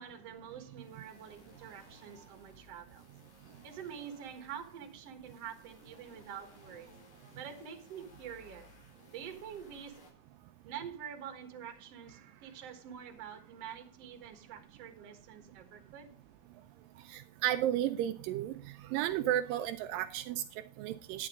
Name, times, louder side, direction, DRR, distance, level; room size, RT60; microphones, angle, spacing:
voice 1, 0.0-3.1 3.6-6.9 7.4-8.7 9.1-10.1 10.6-16.1, right 8 dB, 55° right, 2.3 m, -46 dB
sound 1, 0.7-10.1, left 3 dB, 85° left, 6.0 m, -61 dB
voice 2, 17.0-21.3, right 12 dB, 85° right, 2.3 m, -33 dB
11.0 x 9.8 x 3.7 m
omnidirectional pair, 4.0 m